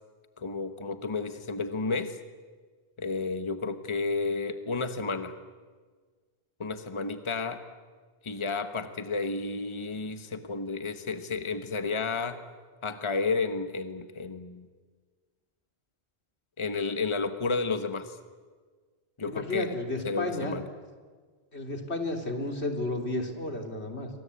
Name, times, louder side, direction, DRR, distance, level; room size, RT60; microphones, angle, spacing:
voice 1, 0.4-2.2 3.0-5.3 6.6-7.6 8.2-12.4 12.8-14.7 16.6-18.2 19.2-19.7 20.0-20.7, left 4 dB, 30° left, 9 dB, 1.3 m, -31 dB
voice 2, 19.3-20.6 21.5-24.1, left 2 dB, 85° left, 4 dB, 3.5 m, -32 dB
28.0 x 24.5 x 8.4 m, 1.5 s
omnidirectional pair, 1.1 m